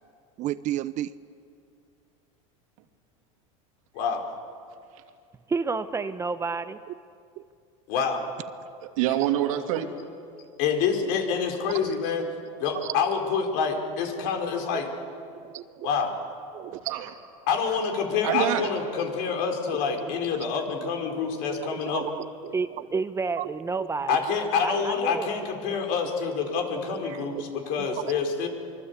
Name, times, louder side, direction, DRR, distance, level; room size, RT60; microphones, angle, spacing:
voice 1, 0.4-1.1 6.9-7.0 7.4-7.5 9.2-9.3 11.7-11.9 12.7-13.0 14.2-14.8 15.4-15.9 16.5-16.8 18.3-18.4 19.6-20.5 20.8-23.0 23.4-23.5 23.8-23.9 24.7-24.9 25.1-25.2 25.6-25.8 26.7-27.1 27.3-28.3, right 14 dB, 45° right, 15 dB, 0.8 m, -36 dB
voice 2, 3.9-4.3 7.9-8.2 10.6-12.2 12.6-14.9 15.8-16.1 17.5-22.0 24.1-28.5, left 6 dB, 65° left, 3 dB, 4.7 m, -27 dB
voice 3, 5.5-6.8 22.5-24.1 24.6-25.3, right 4 dB, 15° right, 10 dB, 0.9 m, -29 dB
voice 4, 8.8-9.9 16.7-17.1 18.2-18.7 27.0-27.2, right 12 dB, 80° right, 5 dB, 2.9 m, -26 dB
25.0 x 23.5 x 8.4 m, 2.4 s
supercardioid pair, 120°, 17 cm